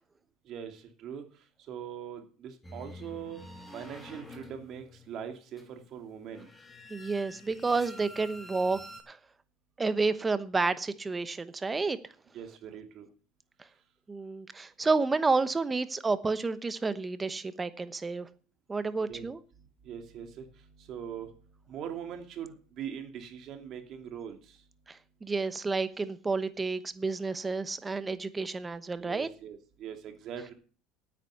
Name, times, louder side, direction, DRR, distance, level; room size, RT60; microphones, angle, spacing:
voice 1, 0.5-1.3 1.7-3.4 3.7-6.5 12.3-13.1 19.1-19.3 19.6-21.4 21.7-24.6 29.0-30.5, right 8 dB, 50° right, 2.6 m, -42 dB
sound 1, 2.6-9.0, left 1 dB, 10° left, 2.9 m, -48 dB
voice 2, 6.9-8.8 9.1-9.2 9.8-12.0 14.1-18.3 18.7-19.4 24.9-29.3, right 3 dB, 15° right, 1.0 m, -30 dB
9.4 x 8.9 x 6.8 m
supercardioid pair, 110°, 0 cm